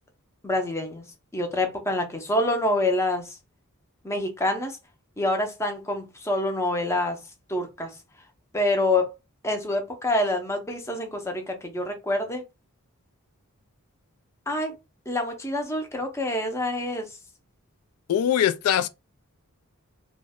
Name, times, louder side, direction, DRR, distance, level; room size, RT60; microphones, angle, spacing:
voice 1, 0.4-1.1 1.3-3.4 4.0-4.8 5.2-7.2 7.5-7.9 8.5-9.1 9.4-12.4 14.5-14.7 15.1-17.1, left 1 dB, 10° left, 0.5 m, -26 dB
voice 2, 18.1-18.9, left 10 dB, 85° left, 0.3 m, -22 dB
3.0 x 2.1 x 3.5 m
head